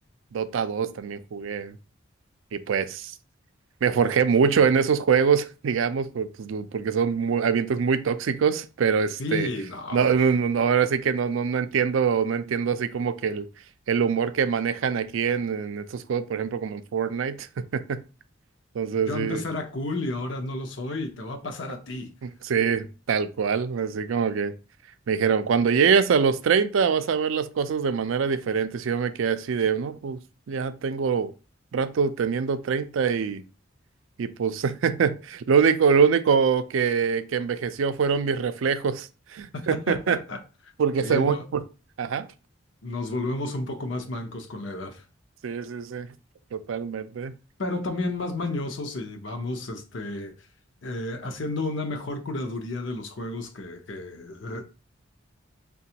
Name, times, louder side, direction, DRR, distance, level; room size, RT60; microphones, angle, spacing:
voice 1, 0.3-1.8 2.5-3.1 3.8-9.5 9.9-13.4 13.9-18.0 18.7-19.4 22.2-24.5 25.1-30.2 30.5-31.3 31.7-33.4 34.2-40.2 40.8-41.6 42.0-42.3 45.4-46.1 46.5-47.3, right 6 dB, 75° right, 0.4 m, -24 dB
voice 2, 9.2-10.1 19.0-22.1 39.5-40.4 41.0-41.4 42.8-45.0 47.6-50.3 50.8-54.6, left 2 dB, 65° left, 0.7 m, -32 dB
5.8 x 2.2 x 2.8 m
head